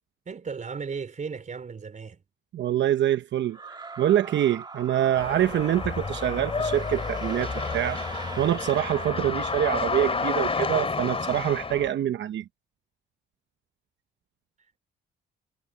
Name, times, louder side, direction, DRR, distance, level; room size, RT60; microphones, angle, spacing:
voice 1, 0.3-2.2, right 5 dB, 40° right, 4.0 m, -35 dB
voice 2, 2.5-8.0 8.4-12.4, right 11 dB, 65° right, 0.9 m, -25 dB
sound 1, 3.5-9.9, right 3 dB, 20° right, 1.6 m, -41 dB
sound 2, 5.1-11.9, left 4 dB, 30° left, 2.8 m, -30 dB
cardioid pair, 90°, 20 cm